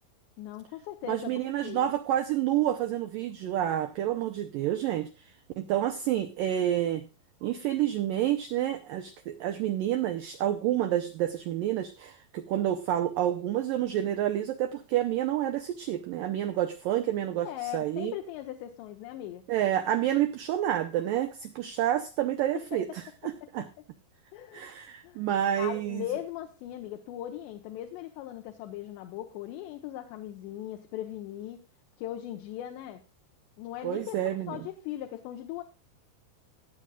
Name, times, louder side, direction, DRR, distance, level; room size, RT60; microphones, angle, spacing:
voice 1, 0.4-1.9 17.4-19.4 23.4-23.7 24.3-24.7 25.0-25.2 25.6-31.6 32.0-33.0 33.6-35.6, left 12 dB, 80° left, 4 dB, 3.2 m, -39 dB
voice 2, 1.1-5.1 5.6-7.1 7.4-18.1 19.5-23.7 24.5-26.0 33.8-34.6, right 12 dB, 90° right, 9 dB, 1.9 m, -29 dB
18.0 x 8.9 x 2.3 m, 0.30 s
omnidirectional pair, 5.0 m